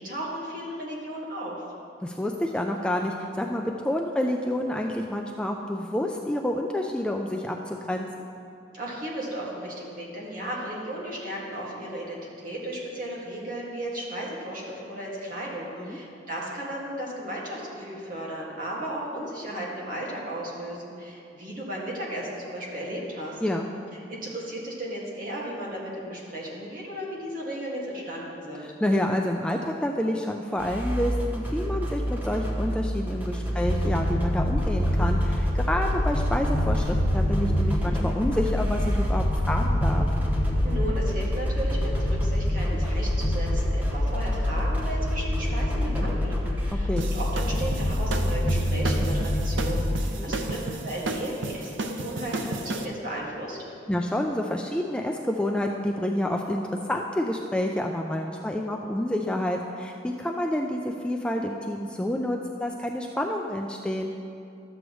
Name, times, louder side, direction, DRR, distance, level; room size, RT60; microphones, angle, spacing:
voice 1, 0.0-1.6 8.7-23.4 24.1-28.7 40.6-53.6, right 1 dB, 45° right, -4 dB, 1.8 m, -35 dB
voice 2, 2.0-8.3 15.8-16.0 23.4-23.7 28.6-40.1 46.8-47.0 50.2-50.3 53.9-64.1, left 1 dB, 5° left, 1 dB, 0.3 m, -28 dB
sound 1, 30.6-46.7, equal, 10° right, 1.0 m, -30 dB
sound 2, 33.6-50.0, left 1 dB, 80° left, 1.4 m, -26 dB
sound 3, 47.0-52.8, right 2 dB, 85° right, 0.6 m, -33 dB
12.5 x 7.8 x 3.1 m, 2.6 s
head